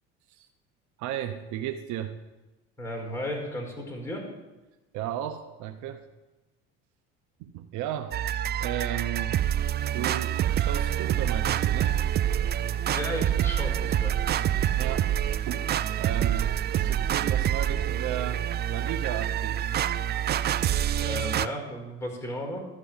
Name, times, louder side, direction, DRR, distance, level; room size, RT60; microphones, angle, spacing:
voice 1, 1.0-2.2 4.9-6.0 7.4-8.1 8.6-9.4 9.9-12.0 14.8-15.1 15.5-19.7, right 11 dB, 65° right, 8 dB, 0.8 m, -35 dB
voice 2, 2.8-4.3 12.9-14.2 20.9-22.7, left 1 dB, 10° left, 1 dB, 4.7 m, -34 dB
sound 1, 8.1-21.5, right 10 dB, 35° right, 0.4 m, -26 dB
13.0 x 4.9 x 8.8 m, 1.1 s
supercardioid pair, 85°, 31 cm